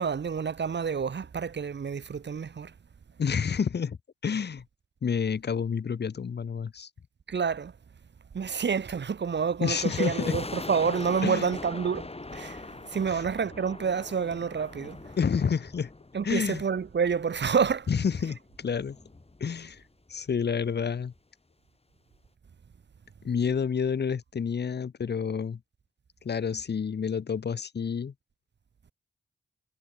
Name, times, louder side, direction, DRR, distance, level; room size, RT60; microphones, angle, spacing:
voice 1, 0.0-2.7 7.3-7.7 8.3-12.6 12.9-15.0 16.1-17.9, right 6 dB, 70° right, 3.2 m, -28 dB
voice 2, 3.2-4.6 5.0-6.9 9.6-10.4 11.2-11.5 13.1-13.2 15.2-15.9 16.2-16.6 17.9-19.0 19.4-19.8 20.1-21.1 23.2-25.6 26.2-28.1, left 6 dB, 60° left, 1.4 m, -29 dB
sound 1, 9.7-17.0 17.2-17.3 18.0-19.8 20.1-20.2 20.4-20.7 21.2-21.3, left 2 dB, 30° left, 6.3 m, -41 dB
supercardioid pair, 40°, 19 cm